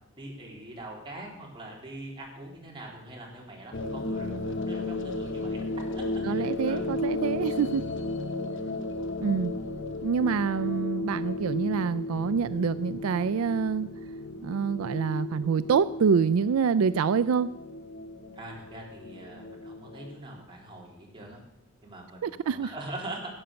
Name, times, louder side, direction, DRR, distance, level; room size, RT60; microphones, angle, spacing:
voice 1, 0.2-6.8 7.4-8.1 18.3-21.4 21.8-23.3, right 1 dB, 25° right, -2 dB, 3.7 m, -43 dB
sound 1, 3.7-20.1, left 2 dB, 60° left, 1.1 m, -34 dB
voice 2, 6.2-7.8 9.2-9.5 10.0-13.9 14.4-17.5 22.2-22.7, right 6 dB, 75° right, 14 dB, 0.4 m, -26 dB
15.5 x 8.9 x 6.9 m, 0.85 s
head